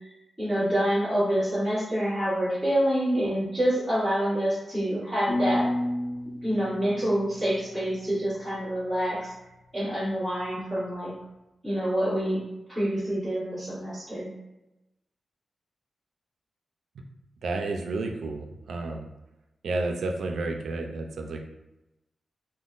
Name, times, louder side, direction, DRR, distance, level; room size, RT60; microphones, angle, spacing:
voice 1, 0.4-5.7 6.4-9.3 9.7-11.1 11.6-12.4 12.7-14.3, equal, 5° left, -13 dB, 1.4 m, -27 dB
sound 1, 5.3-8.2, left 1 dB, 70° left, 0.4 m, -31 dB
voice 2, 17.4-19.1 19.6-21.4, right 3 dB, 80° right, 3 dB, 0.3 m, -31 dB
3.7 x 2.1 x 2.4 m, 0.95 s
wide cardioid pair, 160°, 0 cm